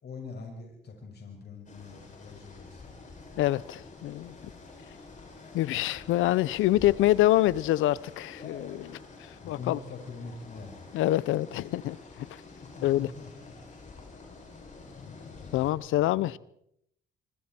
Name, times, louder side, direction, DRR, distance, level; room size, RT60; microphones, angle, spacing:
voice 1, 0.0-3.0 9.4-10.8 12.6-13.5 15.0-16.3, left 4 dB, 55° left, 5.8 m, -44 dB
sound 1, 1.7-15.7, left 3 dB, 40° left, 7.0 m, -48 dB
voice 2, 3.4-4.3 5.5-9.8 10.9-12.3 12.8-13.1 15.5-16.4, left 15 dB, 90° left, 0.7 m, -26 dB
25.0 x 25.0 x 4.5 m
cardioid pair, 90°, 20 cm